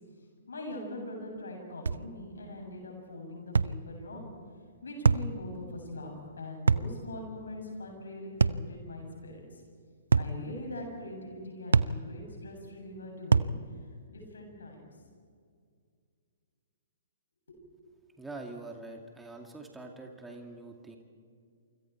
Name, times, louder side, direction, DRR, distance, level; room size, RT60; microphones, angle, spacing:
voice 1, 0.5-4.3 4.8-9.6 10.2-13.5 14.1-14.9 17.5-17.6, left 1 dB, 75° left, 2 dB, 7.5 m, -42 dB
sound 1, 1.9-2.1 3.5-3.8 5.0-5.3 6.7-6.9 8.4-8.7 10.1-10.4 11.7-12.0 13.3-13.6, right 4 dB, 75° right, 0.6 m, -24 dB
voice 2, 18.2-21.0, right 2 dB, 5° right, 2 dB, 2.4 m, -44 dB
28.5 x 25.5 x 4.7 m, 2.2 s
figure-of-eight pair, 125°, 0 cm